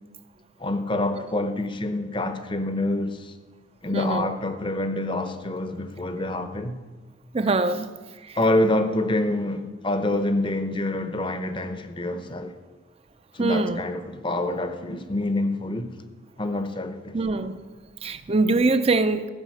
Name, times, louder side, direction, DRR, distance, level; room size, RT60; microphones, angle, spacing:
voice 1, 0.6-3.3 3.8-6.8 8.4-12.6 13.3-15.9 16.4-17.2, left 1 dB, 25° left, 0.8 m, -26 dB
voice 2, 3.9-4.3 7.3-7.9 8.2-8.4 13.4-13.8 17.1-17.6 18.0-19.3, right 3 dB, 30° right, 0.6 m, -23 dB
14.5 x 5.7 x 7.8 m
head